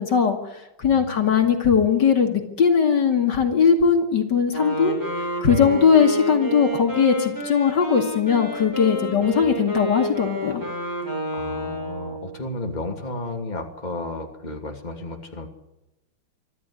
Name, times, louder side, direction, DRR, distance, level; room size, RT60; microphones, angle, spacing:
voice 1, 0.0-5.0 5.4-10.6, left 6 dB, 65° left, 5 dB, 3.0 m, -19 dB
voice 2, 0.9-1.5 9.4-9.5 11.4-15.5, left 2 dB, 20° left, 3 dB, 2.9 m, -33 dB
Wind instrument woodwind instrument, 4.5-12.4, equal, 10° right, 7.0 m, -29 dB
24.5 x 13.5 x 9.8 m, 0.94 s
omnidirectional pair, 2.0 m